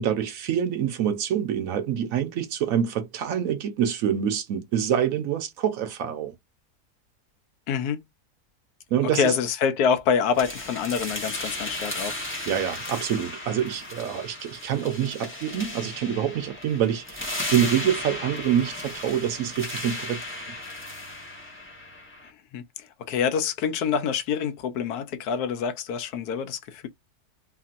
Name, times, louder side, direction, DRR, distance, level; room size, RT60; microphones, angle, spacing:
voice 1, 0.0-6.3 8.9-9.3 12.5-20.5, right 9 dB, 70° right, 0.9 m, -26 dB
voice 2, 7.7-8.0 9.1-12.2 22.5-26.9, left 7 dB, 80° left, 1.1 m, -26 dB
sound 1, 10.3-22.3, left 2 dB, 10° left, 0.8 m, -35 dB
3.0 x 2.6 x 2.4 m
omnidirectional pair, 1.6 m